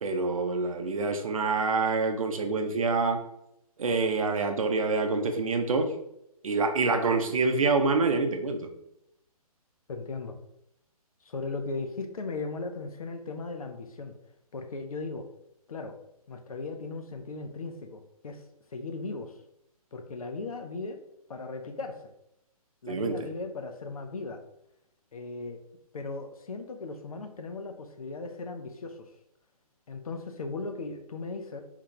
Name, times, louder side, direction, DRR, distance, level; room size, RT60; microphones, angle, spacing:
voice 1, 0.0-3.2 3.8-5.9 6.4-8.7 22.9-23.1, right 3 dB, 60° right, 5 dB, 0.6 m, -26 dB
voice 2, 9.9-10.4 11.2-14.1 14.5-15.3 15.7-16.0 16.3-18.4 18.7-19.4 19.9-21.0 21.3-22.1 22.8-24.4 25.1-25.6 25.9-29.1 29.9-31.6, left 3 dB, 65° left, 6 dB, 0.6 m, -37 dB
3.7 x 2.4 x 4.6 m, 0.81 s
figure-of-eight pair, 130°, 20 cm